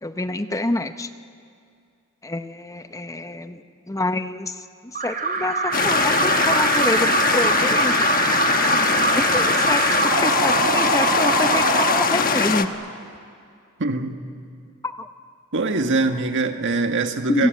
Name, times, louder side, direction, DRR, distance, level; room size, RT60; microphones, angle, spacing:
voice 1, 0.0-1.1 2.2-3.6 3.9-8.0 8.7-12.7 14.8-15.1 17.3-17.5, left 1 dB, 15° left, 9 dB, 0.7 m, -27 dB
Alarm, 4.9-12.8, right 3 dB, 40° right, 3.3 m, -23 dB
sound 1, 5.7-12.6, left 5 dB, 40° left, 1.1 m, -22 dB
voice 2, 13.8-14.1 15.5-17.5, right 3 dB, 60° right, 6 dB, 1.7 m, -23 dB
28.5 x 19.0 x 9.3 m, 2.3 s
head